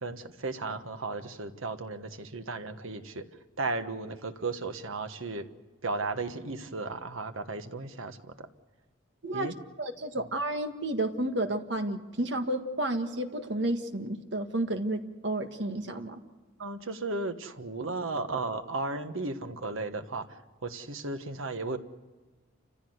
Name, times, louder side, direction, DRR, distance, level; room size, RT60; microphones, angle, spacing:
voice 1, 0.0-3.2 3.6-5.4 5.8-8.2 9.3-9.5 16.6-21.8, right 3 dB, 85° right, 8 dB, 1.4 m, -35 dB
voice 2, 9.8-16.2, right 1 dB, 60° right, 6 dB, 1.7 m, -31 dB
29.0 x 15.0 x 8.0 m, 1.3 s
head